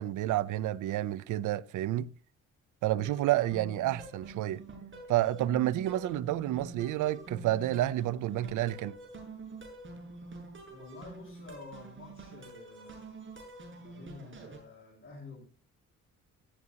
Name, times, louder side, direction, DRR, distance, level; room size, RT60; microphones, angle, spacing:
voice 1, 0.0-2.1 2.8-4.6 5.1-8.9, right 14 dB, 80° right, 0.7 m, -30 dB
sound 1, 2.9-14.6, right 3 dB, 40° right, 7.2 m, -47 dB
voice 2, 10.7-13.4 13.7-15.4, left 3 dB, 35° left, 7.3 m, -50 dB
14.5 x 14.0 x 2.8 m
cardioid pair, 90°, 30 cm